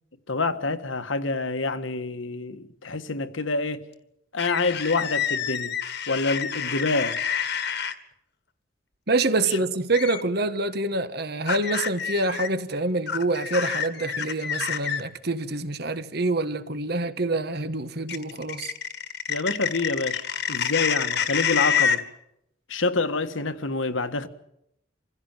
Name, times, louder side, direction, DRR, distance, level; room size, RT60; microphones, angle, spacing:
voice 1, 0.3-3.9 4.3-5.8 6.1-7.2 9.5-9.6 19.3-22.0 22.7-24.3, left 3 dB, 80° left, 1.6 m, -27 dB
sound 1, 4.4-7.9 9.9-10.2 11.5-12.5 13.1-15.0 18.1-22.0, left 7 dB, 60° left, 1.7 m, -27 dB
voice 2, 9.1-18.7, right 2 dB, 55° right, 1.5 m, -26 dB
26.0 x 16.0 x 9.1 m
head